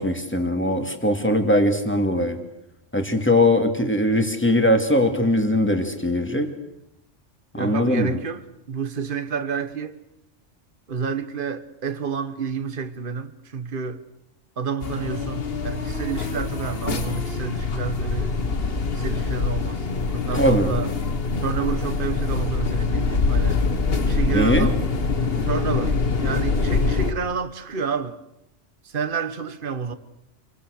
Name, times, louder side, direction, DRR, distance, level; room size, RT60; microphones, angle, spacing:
voice 1, 0.0-2.4 2.9-6.5 7.5-8.2 20.3-20.7 24.3-24.7, left 1 dB, 10° left, 2.6 m, -20 dB
voice 2, 7.6-10.0 10.9-14.0 14.6-18.3 18.9-19.9 20.1-20.9 21.4-23.6 24.0-24.8 25.4-28.2 28.8-29.9, right 6 dB, 45° right, 1.5 m, -29 dB
sound 1, 14.8-27.1, left 4 dB, 50° left, 1.8 m, -24 dB
28.0 x 23.5 x 6.7 m
omnidirectional pair, 1.3 m